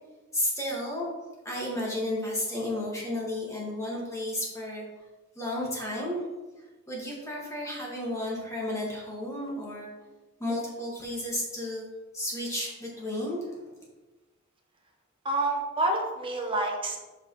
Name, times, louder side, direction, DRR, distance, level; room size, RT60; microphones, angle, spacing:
voice 1, 0.3-1.1 1.5-4.8 5.4-6.2 6.9-9.9 10.4-11.8 12.1-13.6, left 1 dB, 15° left, -4 dB, 1.9 m, -32 dB
voice 2, 15.2-17.0, right 2 dB, 25° right, 1 dB, 1.1 m, -28 dB
7.5 x 5.4 x 3.1 m, 1.2 s
head